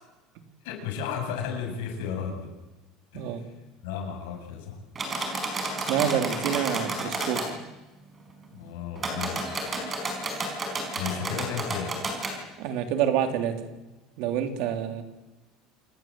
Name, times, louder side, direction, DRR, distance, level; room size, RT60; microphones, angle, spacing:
voice 1, 0.6-2.5 3.1-3.3 3.8-4.8 8.5-9.4 11.0-12.0, left 7 dB, 90° left, 2 dB, 7.6 m, -33 dB
sound 1, 5.0-7.5 9.0-12.4, right 2 dB, 20° right, 4.9 m, -31 dB
voice 2, 5.8-7.6 12.6-13.6 14.2-15.0, right 9 dB, 60° right, 7 dB, 3.2 m, -27 dB
27.0 x 18.0 x 7.7 m, 1.1 s
cardioid pair, 160°, 0 cm